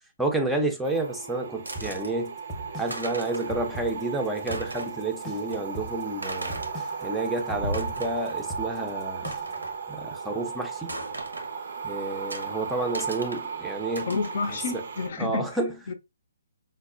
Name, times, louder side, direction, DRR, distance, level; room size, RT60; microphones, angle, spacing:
voice 1, 0.2-2.3 2.8-6.6 7.0-9.3 9.9-10.9 11.8-14.1 14.7-14.8 15.2-15.7, right 2 dB, 5° right, 0.5 m, -30 dB
sound 1, 0.8-15.1, right 5 dB, 60° right, 0.6 m, -36 dB
sound 2, 1.7-2.1 2.6-2.7 2.9-3.6 3.9-4.0 4.4-5.0 5.5-5.6 6.2-6.8 7.5-8.4 8.7-8.8 9.2-9.8 10.9-11.5 12.3-12.5 12.9-13.5 14.0-14.4, right 1 dB, 85° right, 1.0 m, -37 dB
sound 3, 1.8-9.7, equal, 20° left, 0.8 m, -40 dB
voice 2, 14.1-15.5 15.9-16.0, left 4 dB, 55° left, 0.5 m, -29 dB
5.2 x 2.1 x 2.4 m
figure-of-eight pair, 135°, 0 cm